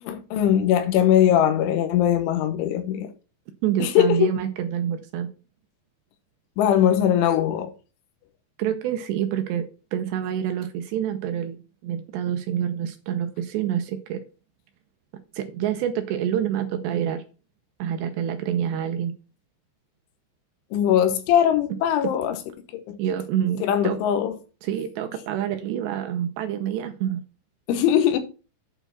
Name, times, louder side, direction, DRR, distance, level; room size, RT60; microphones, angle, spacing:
voice 1, 0.0-3.1 3.8-4.3 6.6-7.7 20.7-22.4 22.7-23.0 23.6-24.4 27.7-28.2, left 10 dB, 80° left, 3.4 m, -21 dB
voice 2, 3.6-5.3 8.6-9.6 9.9-14.2 15.3-17.2 17.8-19.1 23.0-24.0 24.6-27.2, right 10 dB, 80° right, 2.6 m, -27 dB
9.0 x 4.5 x 5.8 m
omnidirectional pair, 5.6 m